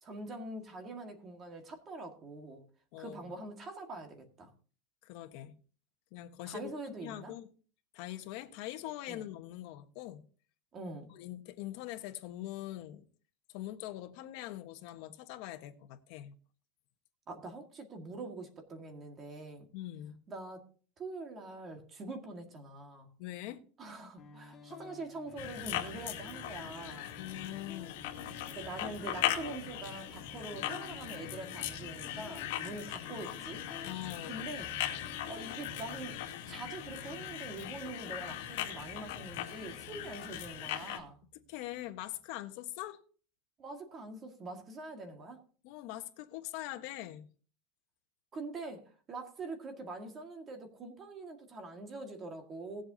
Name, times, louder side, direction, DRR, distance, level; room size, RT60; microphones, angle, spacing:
voice 1, 0.0-2.6 3.0-4.5 6.4-7.3 9.1-9.3 10.7-11.1 17.3-19.7 20.3-20.7 21.0-23.1 23.8-27.2 28.5-33.6 34.2-34.7 35.3-36.2 36.5-41.2 43.6-45.4 48.3-52.8, right 2 dB, 25° right, 1.9 m, -44 dB
voice 2, 5.0-5.5 6.1-6.7 7.0-7.5 7.9-10.2 11.1-13.0 13.5-16.4 19.7-20.2 23.2-23.6 27.2-28.0 32.7-33.2 33.8-34.4 41.5-43.0 45.6-47.2, left 14 dB, 50° left, 1.2 m, -43 dB
sound 1, 24.2-42.1, left 3 dB, 25° left, 1.6 m, -53 dB
sound 2, 25.4-41.0, left 12 dB, 70° left, 2.0 m, -39 dB
18.5 x 7.9 x 2.8 m
supercardioid pair, 160°, 0 cm